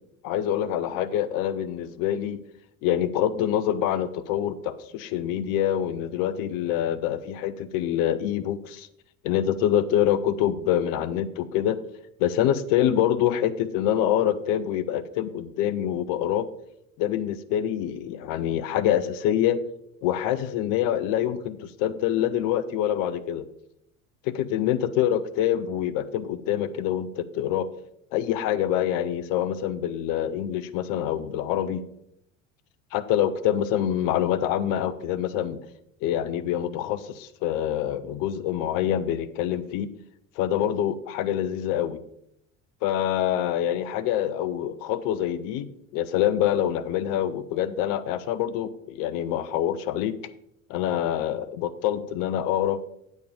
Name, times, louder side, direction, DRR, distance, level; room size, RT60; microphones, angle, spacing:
voice 1, 0.2-2.4 2.8-8.9 9.2-11.8 12.2-16.5 17.0-19.6 20.0-23.5 24.2-27.7 28.1-31.8 32.9-35.6 36.0-39.9 40.4-42.0 42.8-50.2 50.7-52.8, left 10 dB, 55° left, 13 dB, 0.7 m, -26 dB
8.4 x 6.4 x 4.8 m, 0.77 s
hypercardioid pair, 70°, 40 cm